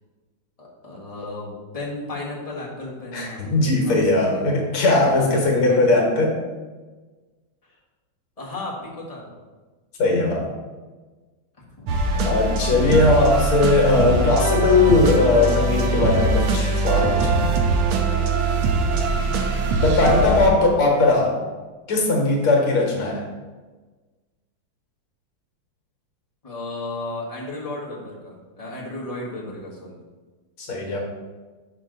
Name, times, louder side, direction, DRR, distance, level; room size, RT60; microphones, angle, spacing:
voice 1, 0.6-4.6 5.0-6.0 7.6-7.8 8.4-9.3 11.8-12.0 18.9-19.2 26.4-30.0, left 2 dB, 20° left, -4 dB, 1.2 m, -34 dB
voice 2, 3.1-6.4 10.0-10.5 12.1-17.6 19.8-21.4 21.9-23.2 30.6-31.0, left 2 dB, 80° left, 0 dB, 2.3 m, -19 dB
sound 1, 11.9-20.5, right 3 dB, 80° right, 1.7 m, -22 dB
6.5 x 5.7 x 3.9 m, 1.3 s
omnidirectional pair, 2.3 m